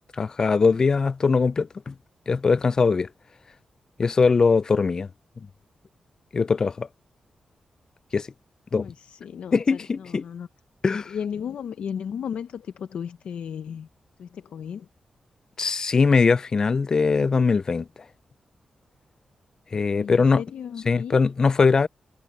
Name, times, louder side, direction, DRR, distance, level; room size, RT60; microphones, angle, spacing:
voice 1, 0.2-1.9 2.3-3.1 4.0-5.1 6.3-6.9 8.1-8.3 8.7-8.9 9.5-10.2 10.8-11.0 15.6-17.9 19.7-20.4 20.9-21.9, left 4 dB, 35° left, 0.3 m, -21 dB
voice 2, 8.7-10.5 10.9-13.9 14.2-14.9 19.9-21.2, left 8 dB, 80° left, 0.6 m, -35 dB
wide cardioid pair, 165°, 2 cm